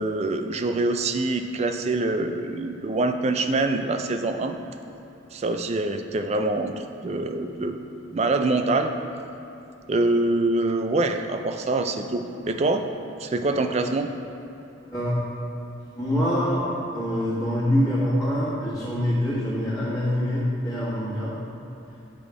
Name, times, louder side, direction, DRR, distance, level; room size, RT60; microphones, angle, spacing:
voice 1, 0.0-4.6 5.3-7.8 8.1-8.9 9.9-12.9 13.2-14.1, right 2 dB, 35° right, 7 dB, 0.3 m, -25 dB
voice 2, 14.9-15.2 15.9-16.6 16.9-21.4, equal, 20° left, -11 dB, 1.7 m, -25 dB
9.5 x 3.8 x 4.8 m, 2.9 s
head